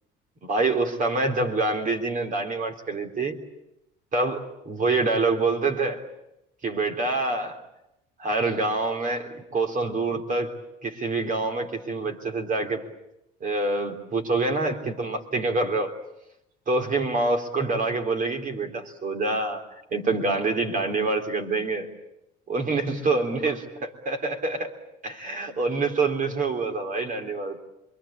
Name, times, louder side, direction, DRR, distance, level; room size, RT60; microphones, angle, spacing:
voice 1, 0.4-3.4 4.1-6.1 6.6-7.6 8.2-10.6 10.8-12.8 13.4-16.0 16.7-19.6 19.9-21.9 22.5-24.7 25.0-27.6, right 3 dB, 40° right, 4 dB, 3.5 m, -26 dB
27.5 x 23.5 x 8.6 m, 0.84 s
cardioid pair, 105°, 21 cm